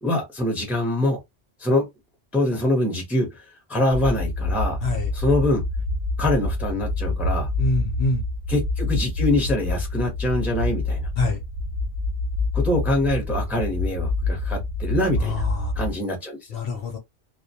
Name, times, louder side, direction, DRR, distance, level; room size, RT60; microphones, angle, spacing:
voice 1, 0.0-1.2 1.6-1.9 2.3-3.4 3.7-4.8 5.1-5.6 6.2-7.5 8.5-11.1 12.5-15.4 15.8-16.4, left 1 dB, ahead, 0.6 m, -24 dB
sound 1, 3.9-15.9, left 2 dB, 50° right, 0.8 m, -26 dB
voice 2, 7.6-8.2 11.2-11.4 15.2-15.7 16.5-17.0, left 3 dB, 60° left, 0.7 m, -25 dB
2.2 x 2.1 x 2.7 m
omnidirectional pair, 1.2 m